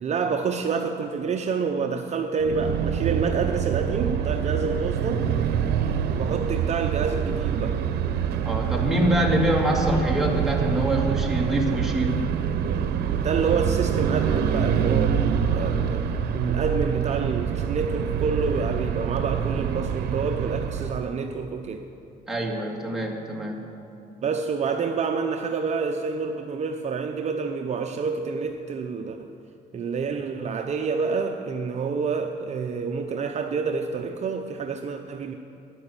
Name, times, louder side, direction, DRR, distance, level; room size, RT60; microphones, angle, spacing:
voice 1, 0.0-5.2 6.1-7.8 13.2-21.8 24.2-29.3 29.7-35.3, right 5 dB, 40° right, 4 dB, 0.8 m, -28 dB
sound 1, 2.4-21.1, right 8 dB, 70° right, 0.9 m, -26 dB
voice 2, 8.4-12.2 22.3-23.7, right 1 dB, ahead, -1 dB, 2.2 m, -25 dB
13.5 x 10.5 x 7.1 m, 2.6 s
cardioid pair, 110°, 17 cm